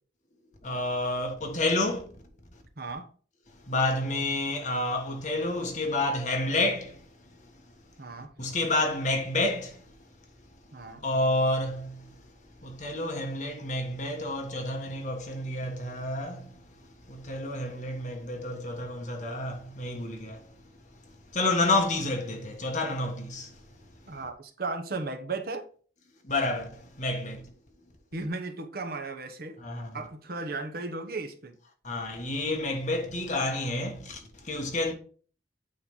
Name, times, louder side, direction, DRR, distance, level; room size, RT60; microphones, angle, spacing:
voice 1, 0.6-2.1 3.6-7.1 7.4-7.5 8.4-9.9 11.0-12.2 12.6-16.6 17.1-20.5 21.3-23.6 26.2-27.5 29.6-29.9 31.8-34.9, left 2 dB, 45° left, 1.4 m, -29 dB
voice 2, 2.8-3.1 8.0-8.3 10.7-11.0 24.1-25.6 28.1-29.6 29.9-31.5, right 3 dB, 60° right, 1.0 m, -35 dB
8.7 x 3.3 x 5.4 m
head